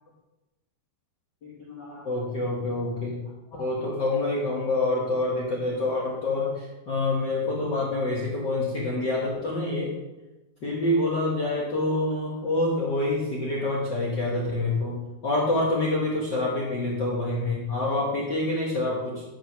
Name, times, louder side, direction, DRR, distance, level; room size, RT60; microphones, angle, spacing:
voice 1, 1.4-3.2 3.5-9.9 10.6-19.2, left 2 dB, 60° left, -4 dB, 1.1 m, -27 dB
10.0 x 5.1 x 5.7 m, 1.1 s
omnidirectional pair, 4.1 m